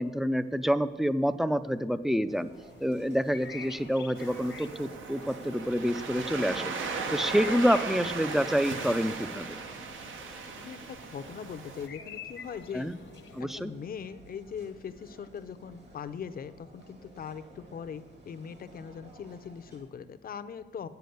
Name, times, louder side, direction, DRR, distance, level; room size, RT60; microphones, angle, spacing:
voice 1, 0.0-2.5 2.8-6.7 7.1-9.6 12.7-13.0 13.3-13.7, equal, ahead, 13 dB, 0.3 m, -28 dB
sound 1, 2.3-19.8, right 2 dB, 60° right, 2.1 m, -54 dB
sound 2, 2.5-13.4, left 6 dB, 75° left, 1.0 m, -49 dB
Waves surf, 4.2-11.9, right 5 dB, 90° right, 1.0 m, -37 dB
voice 2, 10.6-12.9 13.4-20.9, left 7 dB, 50° left, 12 dB, 0.5 m, -41 dB
8.3 x 6.8 x 7.9 m, 1.2 s
wide cardioid pair, 150°, 20 cm